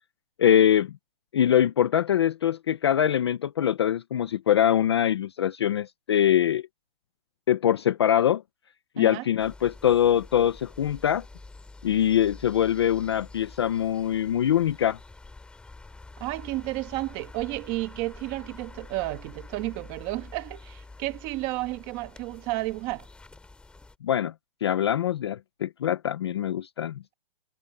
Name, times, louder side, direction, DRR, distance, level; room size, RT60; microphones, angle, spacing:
voice 1, 0.4-0.9 1.3-6.6 7.5-8.4 9.0-11.2 11.8-15.0 24.0-24.3 24.6-27.1, left 10 dB, 30° left, 0.5 m, -23 dB
voice 2, 9.0-9.3 16.2-23.1, right 19 dB, 20° right, 1.2 m, -32 dB
sound 1, 9.4-24.0, left 3 dB, 5° left, 2.5 m, -47 dB
hypercardioid pair, 170°, 29 cm